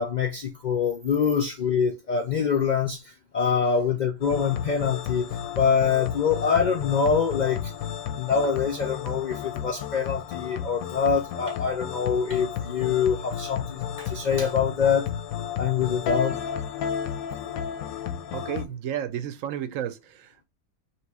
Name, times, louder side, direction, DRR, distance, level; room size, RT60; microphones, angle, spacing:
voice 1, 0.0-5.3 5.5-7.7 8.2-15.0 15.6-16.4, left 6 dB, 70° left, 0.4 m, -25 dB
sound 1, 4.2-18.6, left 8 dB, 90° left, 1.0 m, -32 dB
voice 2, 18.3-20.4, right 10 dB, 75° right, 0.9 m, -32 dB
3.0 x 2.9 x 4.6 m
omnidirectional pair, 1.4 m